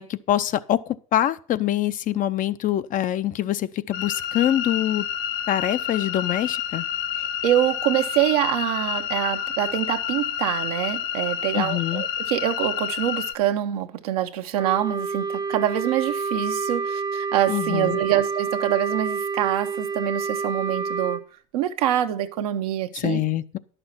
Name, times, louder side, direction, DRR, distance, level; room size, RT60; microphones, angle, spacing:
voice 1, 0.0-5.1 5.5-6.8 11.5-12.0 17.5-18.0 22.9-23.6, left 12 dB, 45° left, 0.7 m, -25 dB
sound 1, 3.9-13.3, left 10 dB, 70° left, 0.9 m, -29 dB
voice 2, 7.4-21.2 21.5-23.2, right 12 dB, 80° right, 1.0 m, -25 dB
Wind instrument woodwind instrument, 14.6-21.2, right 4 dB, 20° right, 0.8 m, -28 dB
11.0 x 6.7 x 5.7 m
hypercardioid pair, 80°, 19 cm